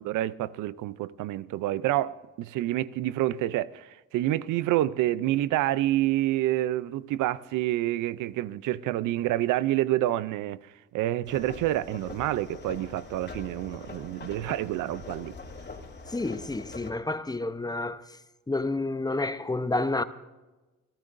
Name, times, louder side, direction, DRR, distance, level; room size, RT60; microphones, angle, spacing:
voice 1, 0.0-3.9 4.1-10.6 10.9-15.3, right 14 dB, 90° right, 0.5 m, -28 dB
sound 1, 11.2-16.9, left 3 dB, 35° left, 2.9 m, -43 dB
voice 2, 16.1-18.0 18.5-20.0, left 2 dB, 15° left, 0.8 m, -29 dB
28.0 x 13.5 x 2.6 m
cardioid pair, 90°, 30 cm